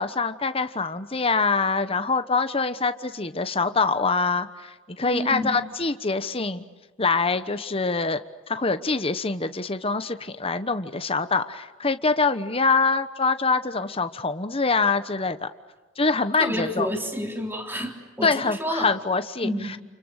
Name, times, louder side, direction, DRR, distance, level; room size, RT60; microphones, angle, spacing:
voice 1, 0.0-6.6 7.0-8.2 8.5-15.5 16.0-16.9 18.2-19.5, left 4 dB, 30° left, 10 dB, 1.2 m, -24 dB
voice 2, 5.0-5.6 16.4-18.9 19.4-19.7, equal, 10° right, 2 dB, 3.7 m, -30 dB
30.0 x 28.5 x 6.6 m, 1.3 s
head